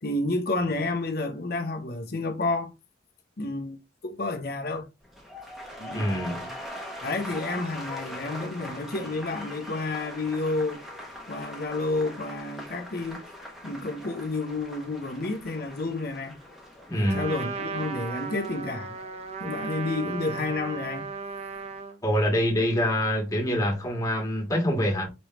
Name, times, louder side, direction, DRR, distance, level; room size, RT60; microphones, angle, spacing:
voice 1, 0.0-2.7 3.4-4.9 5.8-6.5 7.0-10.8 11.3-13.2 13.6-16.4 16.9-19.0 19.4-21.1, left 2 dB, 55° left, 0.8 m, -30 dB
sound 1, 5.0-21.1 21.4-21.8, equal, ahead, 1.2 m, -42 dB
voice 2, 5.9-6.4 16.9-17.3 22.0-25.1, equal, 20° left, 1.8 m, -25 dB
Trumpet, 17.0-22.0, right 5 dB, 35° right, 0.7 m, -35 dB
5.3 x 3.3 x 3.0 m
head